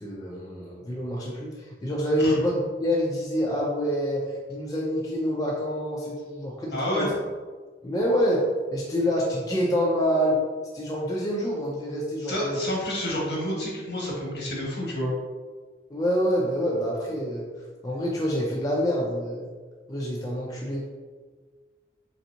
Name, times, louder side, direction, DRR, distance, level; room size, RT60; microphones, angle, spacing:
voice 1, 0.0-7.1 7.8-8.5 8.7-10.4 10.7-12.6 15.9-17.5 17.8-19.5 19.9-20.8, equal, 20° left, -4 dB, 0.5 m, -26 dB
voice 2, 6.7-7.1 12.2-15.1, equal, 70° left, -4 dB, 1.4 m, -29 dB
3.9 x 3.4 x 2.8 m, 1.5 s
head